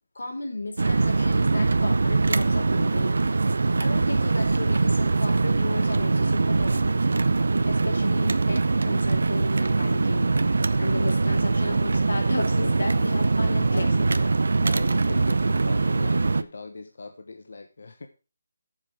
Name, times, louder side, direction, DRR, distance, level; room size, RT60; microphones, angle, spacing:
voice 1, 0.1-7.0 7.6-10.3 10.8-14.2, left 2 dB, 90° left, 2 dB, 4.0 m, -34 dB
sound 1, 0.8-16.4, right 3 dB, 60° right, 0.7 m, -22 dB
voice 2, 11.7-12.4 13.7-18.1, left 3 dB, 45° left, 6 dB, 1.0 m, -40 dB
8.3 x 7.3 x 6.0 m, 0.33 s
hypercardioid pair, 180°, 0 cm